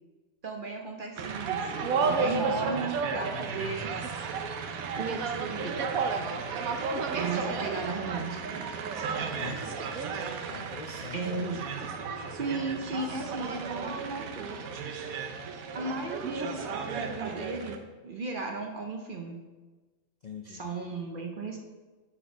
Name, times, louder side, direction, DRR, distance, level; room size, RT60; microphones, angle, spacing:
voice 1, 0.4-3.9 5.0-5.8 7.1-8.7 11.1-11.6 12.4-14.6 15.7-19.4 20.5-21.6, right 3 dB, 50° right, 2 dB, 0.7 m, -35 dB
sound 1, 1.2-17.8, right 5 dB, 80° right, 1.1 m, -33 dB
voice 2, 9.3-9.8 10.5-11.3 12.9-13.3 20.2-20.6, left 6 dB, 75° left, 3 dB, 0.4 m, -44 dB
7.2 x 4.4 x 5.0 m, 1.3 s
omnidirectional pair, 1.5 m